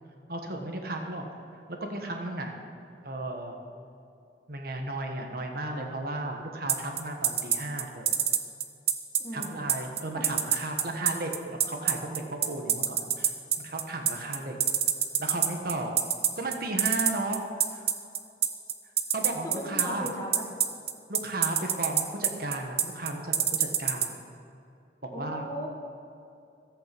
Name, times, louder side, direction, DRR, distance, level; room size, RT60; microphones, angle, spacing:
voice 1, 0.3-1.2 1.7-2.5 3.0-3.6 4.5-8.2 9.3-13.3 13.6-14.6 15.2-15.9 16.4-17.4 17.7-17.9 19.1-20.1 21.1-24.2 25.2-25.5, right 2 dB, 55° right, 3 dB, 1.3 m, -34 dB
sound 1, 6.7-24.1, right 9 dB, 35° right, 0.7 m, -24 dB
voice 2, 9.2-9.6 10.1-10.2 19.4-20.5 25.1-25.7, equal, 20° left, -1 dB, 1.6 m, -37 dB
14.0 x 8.3 x 6.1 m, 2.6 s
head